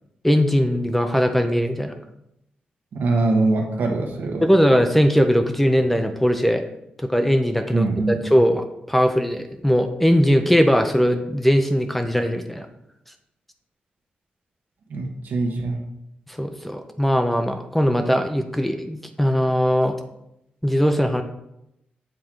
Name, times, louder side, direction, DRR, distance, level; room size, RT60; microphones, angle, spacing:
voice 1, 0.2-1.9 4.4-6.6 7.0-12.7 16.4-20.0 20.6-21.2, equal, 5° left, 7 dB, 0.5 m, -20 dB
voice 2, 2.9-4.4 7.7-8.2 14.9-15.8, right 2 dB, 75° right, 1 dB, 1.3 m, -23 dB
7.5 x 3.7 x 4.6 m, 0.82 s
wide cardioid pair, 120°, 3 cm